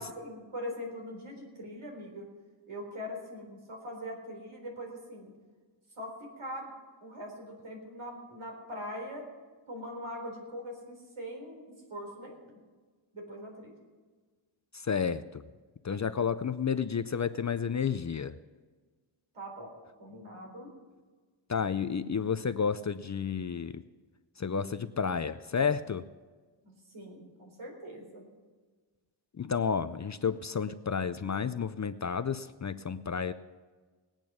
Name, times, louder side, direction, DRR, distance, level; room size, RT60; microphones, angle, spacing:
voice 1, 0.0-2.3 2.7-5.3 6.0-6.7 7.0-9.2 9.7-12.6 13.1-13.7 19.3-19.7 20.0-20.7 26.6-28.3, equal, 75° right, 2 dB, 4.2 m, -42 dB
voice 2, 14.7-15.4 15.8-18.4 21.5-23.8 24.4-26.0 29.4-33.3, left 6 dB, 35° left, 12 dB, 0.4 m, -31 dB
19.5 x 9.0 x 6.2 m, 1.4 s
wide cardioid pair, 145°, 49 cm